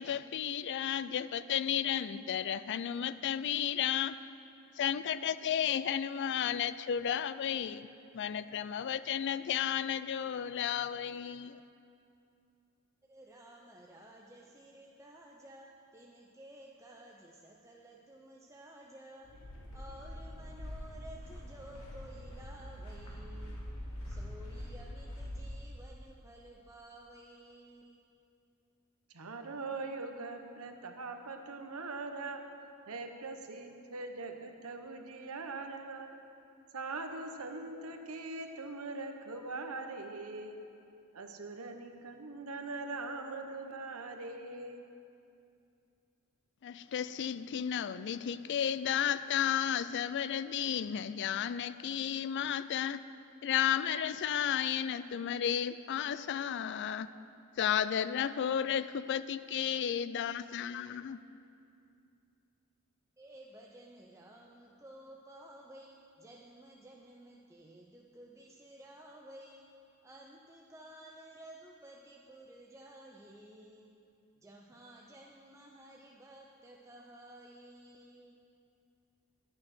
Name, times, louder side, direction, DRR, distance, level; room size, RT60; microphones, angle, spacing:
voice 1, 0.0-4.2 4.8-7.9 8.1-11.6 46.6-53.0 53.4-57.1 57.6-61.2, left 9 dB, 50° left, 15 dB, 0.3 m, -33 dB
voice 2, 13.1-19.4 19.7-23.7 24.0-28.1 63.2-69.7 70.0-73.9 74.4-78.4, right 1 dB, 15° right, -1 dB, 0.5 m, -54 dB
sound 1, 19.2-25.4, equal, 70° left, 2.4 m, -44 dB
voice 3, 29.1-32.4 32.9-36.1 36.7-40.6 41.1-44.8, right 3 dB, 70° right, 5 dB, 1.0 m, -42 dB
11.0 x 8.8 x 6.0 m, 2.6 s
head